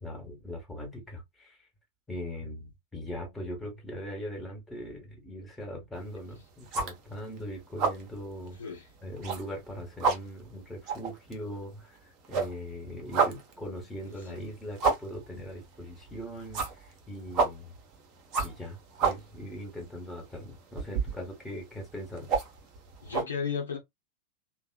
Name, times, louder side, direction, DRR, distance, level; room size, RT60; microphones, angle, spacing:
voice 1, 0.0-1.6 2.1-8.6 9.0-17.7 18.4-22.3, equal, 10° left, 1.1 m, -40 dB
sound 1, 6.0-6.3 6.6-7.4 7.6-8.1 8.5-8.6 9.0-9.7 9.9-12.0 12.2-23.2, right 5 dB, 35° right, 0.7 m, -31 dB
voice 2, 8.6-8.9 14.0-14.4 23.0-23.8, left 6 dB, 70° left, 0.9 m, -35 dB
2.8 x 2.1 x 2.3 m
figure-of-eight pair, 90°, 0 cm